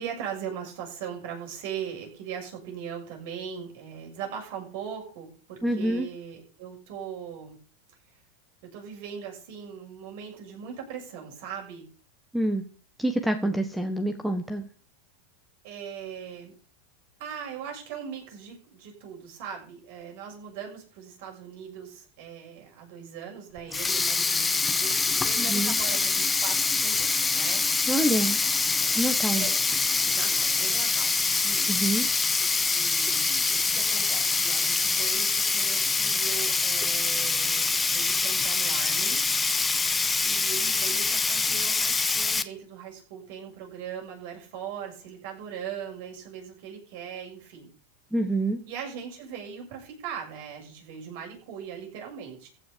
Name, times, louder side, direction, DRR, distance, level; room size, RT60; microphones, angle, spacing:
voice 1, 0.0-7.6 8.6-11.9 15.6-16.5 17.2-27.6 29.3-29.6 30.1-31.1 31.4-31.7 32.7-39.2 40.2-47.7 48.7-52.5, right 8 dB, 60° right, 1 dB, 6.9 m, -39 dB
voice 2, 5.6-6.1 12.3-12.6 13.0-14.6 25.4-25.7 27.9-28.4 28.9-29.5 31.7-32.1 48.1-48.6, right 1 dB, 5° right, 8 dB, 1.3 m, -26 dB
Sink (filling or washing), 23.6-42.4, left 4 dB, 10° left, 1.1 m, -25 dB
15.0 x 6.2 x 8.4 m, 0.40 s
supercardioid pair, 135°, 0 cm